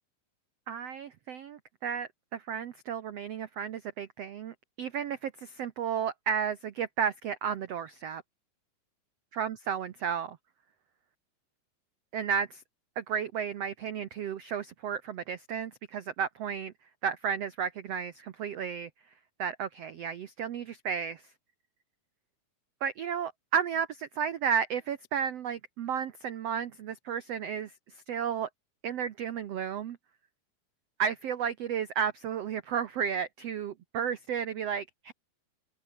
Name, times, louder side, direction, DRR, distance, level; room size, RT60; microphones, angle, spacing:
voice 1, 0.7-8.2 9.3-10.4 12.1-12.6 13.0-16.7 17.0-18.9 19.4-21.2 22.8-27.7 28.1-28.5 28.8-30.0 31.0-35.1, right 7 dB, 80° right, 1.4 m, -33 dB
open air
omnidirectional pair, 4.5 m